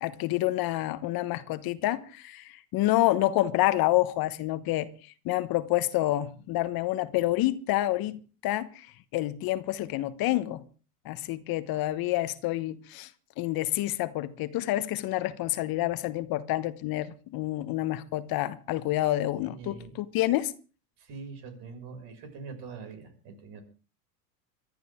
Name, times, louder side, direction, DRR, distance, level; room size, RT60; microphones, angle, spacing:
voice 1, 0.0-8.9 9.1-10.6 11.0-13.1 13.4-20.5, left 16 dB, 45° left, 1.2 m, -28 dB
voice 2, 19.4-19.9 21.0-23.6, right 4 dB, 55° right, 6.2 m, -43 dB
22.5 x 13.5 x 3.6 m
hypercardioid pair, 95°, 48 cm